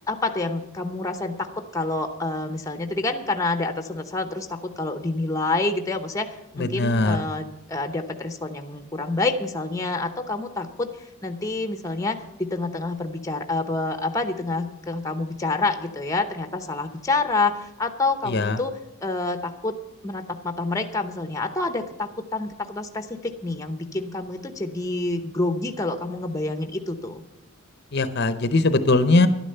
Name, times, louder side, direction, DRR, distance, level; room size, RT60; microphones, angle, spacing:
voice 1, 0.1-19.8 20.0-27.2, left 3 dB, 15° left, 7 dB, 0.8 m, -28 dB
voice 2, 6.6-7.2 18.3-18.6 27.9-29.3, left 2 dB, 50° left, 11 dB, 0.7 m, -20 dB
11.5 x 9.9 x 6.7 m, 0.95 s
head